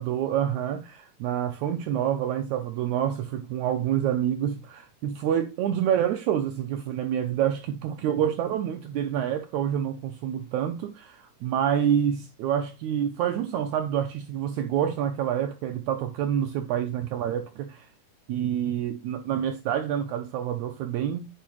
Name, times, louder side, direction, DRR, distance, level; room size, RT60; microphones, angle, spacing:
voice 1, 0.0-17.9 18.3-21.3, right 9 dB, 75° right, 1.8 m, -27 dB
9.3 x 4.7 x 3.1 m
omnidirectional pair, 3.7 m